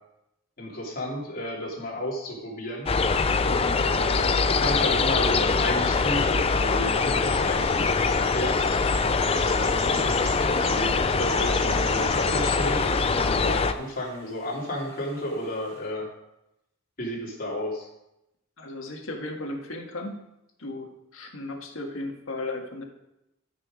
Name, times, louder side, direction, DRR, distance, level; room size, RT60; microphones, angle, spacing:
voice 1, 0.6-2.9 3.4-8.6 9.3-16.1 17.0-17.9, left 1 dB, 45° left, -4 dB, 3.0 m, -32 dB
sound 1, 2.9-13.7, left 4 dB, 30° left, 0.4 m, -23 dB
sound 2, 5.3-15.9, right 2 dB, 30° right, 1.8 m, -44 dB
voice 2, 18.6-20.2 20.6-22.8, left 2 dB, 90° left, 2 dB, 1.7 m, -35 dB
12.5 x 5.9 x 5.0 m, 0.87 s
head